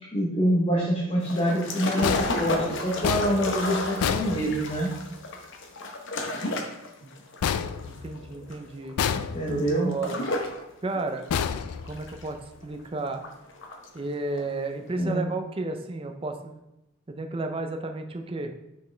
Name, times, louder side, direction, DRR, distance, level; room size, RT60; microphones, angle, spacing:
voice 1, 0.1-4.9 9.3-9.9 15.0-15.3, right 1 dB, 25° left, -4 dB, 0.9 m, -26 dB
sound 1, 1.2-10.6 11.0-12.7 13.1-14.0 14.3-14.5, left 2 dB, 55° left, 0.8 m, -33 dB
sound 2, 2.0-5.1 7.4-8.5 9.0-9.8 11.3-12.4, left 7 dB, 85° left, 0.4 m, -30 dB
voice 2, 7.6-9.0 9.5-10.2 10.8-11.3 11.8-12.4 12.6-13.2 13.9-16.6 17.1-18.5, right 3 dB, 25° right, 4 dB, 0.4 m, -32 dB
5.9 x 5.3 x 3.3 m, 0.90 s
head